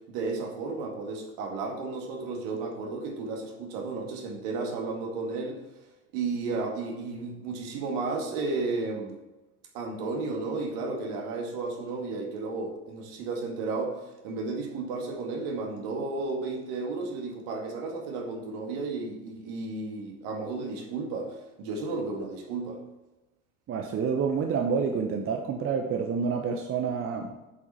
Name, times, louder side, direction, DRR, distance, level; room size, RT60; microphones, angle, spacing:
voice 1, 0.1-5.6 6.1-9.2 9.7-22.8, right 3 dB, 55° right, 2 dB, 2.2 m, -33 dB
voice 2, 23.7-27.3, right 6 dB, 30° right, 4 dB, 0.9 m, -28 dB
8.3 x 7.3 x 4.4 m, 1.1 s
figure-of-eight pair, 70°, 43 cm